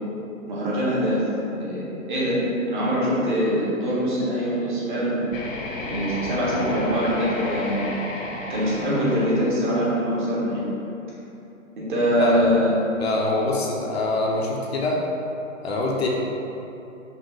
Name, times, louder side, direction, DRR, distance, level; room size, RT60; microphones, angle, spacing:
voice 1, 0.5-1.2 1.5-2.4 2.7-5.2 5.9-7.9 8.5-10.6 11.8-12.9, equal, 35° right, -7 dB, 1.1 m, -23 dB
sound 1, 5.3-10.2, left 2 dB, 70° left, 1.1 m, -32 dB
voice 2, 13.0-15.0 15.6-16.1, left 2 dB, 50° left, -2 dB, 0.6 m, -24 dB
5.3 x 2.5 x 3.8 m, 2.9 s
hypercardioid pair, 155°, 41 cm